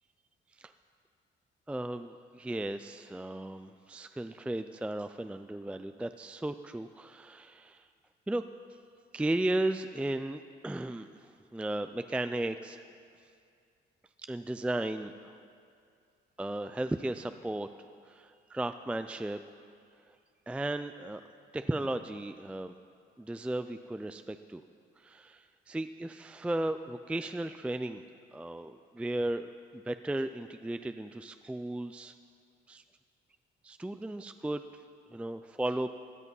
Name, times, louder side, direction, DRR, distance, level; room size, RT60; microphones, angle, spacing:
voice 1, 1.7-7.9 8.3-8.4 9.1-12.8 14.3-15.3 16.4-17.7 18.1-19.4 20.5-21.2 21.5-22.8 23.2-24.6 25.0-28.0 28.3-32.1 32.7-32.8 33.6-34.6 35.1-35.9, right 1 dB, 5° right, 9 dB, 0.4 m, -35 dB
16.5 x 11.0 x 5.4 m, 2.4 s
cardioid pair, 90°, 20 cm